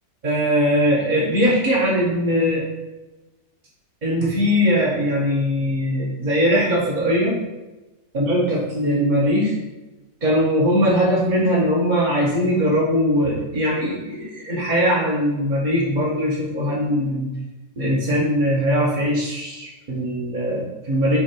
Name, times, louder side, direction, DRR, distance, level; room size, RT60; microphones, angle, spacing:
voice 1, 0.2-2.6 4.0-7.4 8.1-9.6 10.2-17.3 17.8-21.2, equal, 30° right, -6 dB, 1.6 m, -20 dB
8.6 x 2.9 x 4.5 m, 1.1 s
omnidirectional pair, 1.6 m